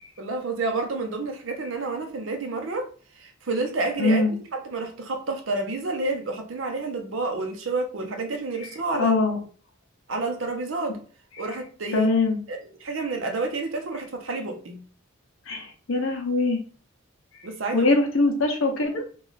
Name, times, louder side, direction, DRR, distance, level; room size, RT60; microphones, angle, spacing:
voice 1, 0.2-2.9 3.1-4.2 4.6-9.1 10.1-11.0 11.4-12.1 12.5-14.8 17.4-17.9, right 3 dB, 65° right, 0.6 m, -29 dB
voice 2, 4.0-4.3 9.0-9.4 11.9-12.4 15.5-16.6 17.7-19.0, left 3 dB, 70° left, 0.7 m, -22 dB
3.0 x 2.4 x 3.9 m
head